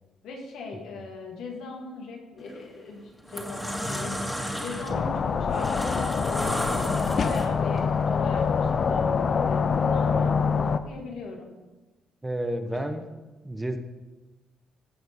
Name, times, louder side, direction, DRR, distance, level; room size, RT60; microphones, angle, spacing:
voice 1, 0.2-4.3 4.6-11.5 12.7-12.8, left 3 dB, 85° left, -1 dB, 2.8 m, -39 dB
sound 1, 2.4-2.6 3.1-7.8, equal, 5° left, 2.2 m, -32 dB
sound 2, 4.9-10.8, left 5 dB, 45° left, 0.6 m, -25 dB
voice 2, 12.2-13.0 13.4-13.8, right 1 dB, 15° right, 7 dB, 1.0 m, -30 dB
16.0 x 6.1 x 5.4 m, 1.2 s
cardioid pair, 90°, 0 cm